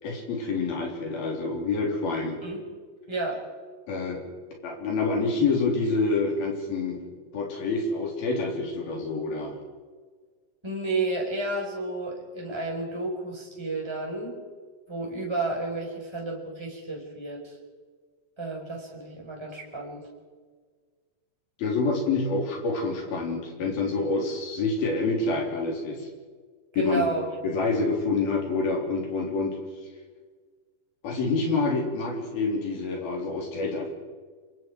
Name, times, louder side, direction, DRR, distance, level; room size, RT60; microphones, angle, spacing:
voice 1, 0.0-2.4 3.9-4.2 4.6-7.0 7.3-9.5 21.6-26.1 26.8-27.0 27.4-29.6 31.0-33.9, left 3 dB, 75° left, 0 dB, 5.7 m, -27 dB
voice 2, 3.1-3.4 10.6-14.3 14.9-17.5 18.4-20.0 26.7-27.3, right 2 dB, 5° right, -1 dB, 4.7 m, -31 dB
28.0 x 25.0 x 4.8 m, 1.5 s
omnidirectional pair, 4.3 m